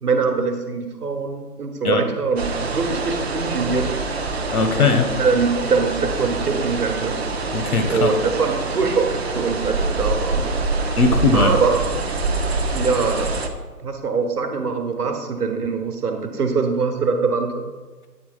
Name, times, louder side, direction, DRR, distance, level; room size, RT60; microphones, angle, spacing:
voice 1, 0.0-2.4 2.7-3.9 5.2-7.2 7.9-10.5 11.3-11.8 12.7-13.3 13.8-17.6, right 4 dB, 70° right, 5 dB, 1.2 m, -23 dB
sound 1, 2.4-13.5, right 3 dB, 45° right, 0.5 m, -25 dB
voice 2, 4.5-5.1 7.5-8.1 11.0-11.5, left 4 dB, 65° left, 7 dB, 1.0 m, -19 dB
8.5 x 3.4 x 4.9 m, 1.3 s
figure-of-eight pair, 145°, 48 cm